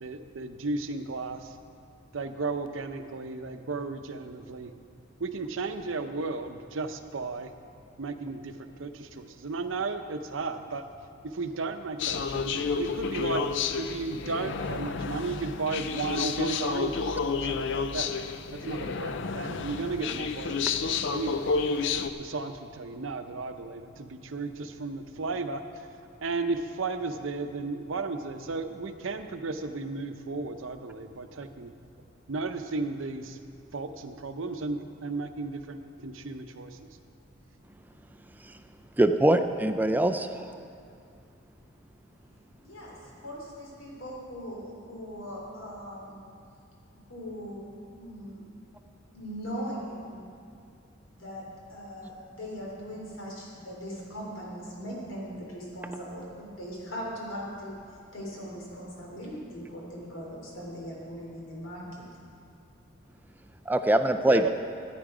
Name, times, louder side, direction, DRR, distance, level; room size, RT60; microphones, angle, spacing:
voice 1, 0.0-1.6 2.1-4.7 5.2-7.5 8.0-10.8 11.3-13.4 13.8-18.1 18.5-21.9 22.2-25.9 26.2-31.7 32.3-33.4 33.7-36.8 64.3-64.5, right 3 dB, 80° right, 8 dB, 0.7 m, -34 dB
sound 1, 12.0-22.1, left 5 dB, 65° left, 0.5 m, -30 dB
voice 2, 39.0-40.5 63.7-64.4, right 1 dB, 10° right, 8 dB, 0.4 m, -23 dB
voice 3, 42.6-46.2 46.9-48.5 49.1-50.2 51.1-57.8 58.1-62.0, equal, 85° left, -3 dB, 3.4 m, -40 dB
14.0 x 9.4 x 4.9 m, 2.4 s
head